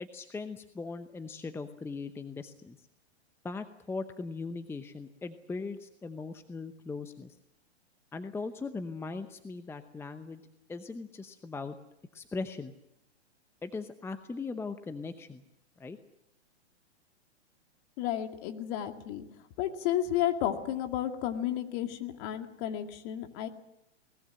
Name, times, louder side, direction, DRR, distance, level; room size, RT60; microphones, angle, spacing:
voice 1, 0.0-2.8 3.4-7.4 8.1-10.4 10.7-11.8 12.1-12.7 13.6-15.4 15.8-16.0, left 4 dB, 5° left, 9 dB, 0.8 m, -39 dB
voice 2, 18.0-19.2 19.6-23.5, left 11 dB, 40° left, 6 dB, 2.3 m, -32 dB
22.0 x 20.0 x 7.7 m, 0.80 s
hypercardioid pair, 120°, 34 cm